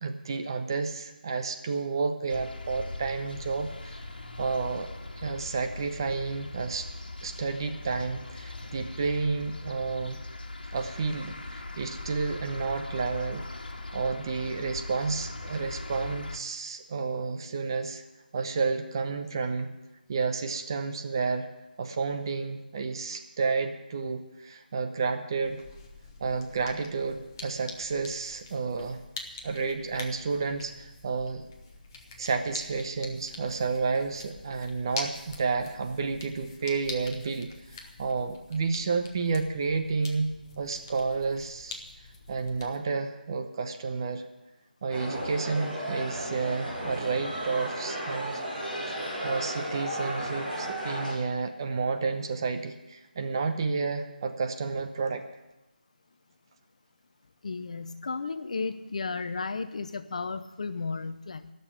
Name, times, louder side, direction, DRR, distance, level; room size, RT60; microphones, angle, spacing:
voice 1, 0.0-4.0 4.4-4.9 5.2-6.9 7.2-10.2 10.7-13.4 13.9-18.0 18.3-19.7 20.1-21.5 21.8-25.6 26.2-29.0 29.4-31.5 32.2-41.8 42.3-44.2 44.8-48.4 48.9-49.0 49.2-55.2, right 4 dB, 25° right, 6 dB, 0.8 m, -31 dB
sound 1, 2.3-16.4, left 2 dB, 70° left, 1.9 m, -40 dB
sound 2, 25.4-42.8, left 3 dB, 25° left, 1.1 m, -45 dB
sound 3, 44.9-51.1, equal, 5° right, 2.4 m, -34 dB
voice 2, 57.4-61.5, left 4 dB, 45° left, 11 dB, 0.6 m, -34 dB
13.5 x 6.8 x 9.9 m, 1.0 s
figure-of-eight pair, 170°, 5 cm